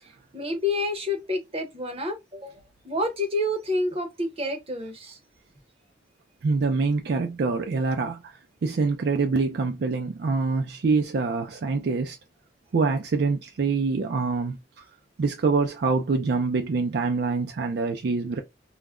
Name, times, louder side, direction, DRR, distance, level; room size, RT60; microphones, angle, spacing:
voice 1, 0.3-5.2, left 1 dB, 35° right, 0.7 m, -29 dB
voice 2, 6.4-8.2 8.6-12.2 12.7-14.6 15.2-18.4, right 4 dB, 65° right, 0.4 m, -25 dB
2.3 x 2.1 x 3.5 m
head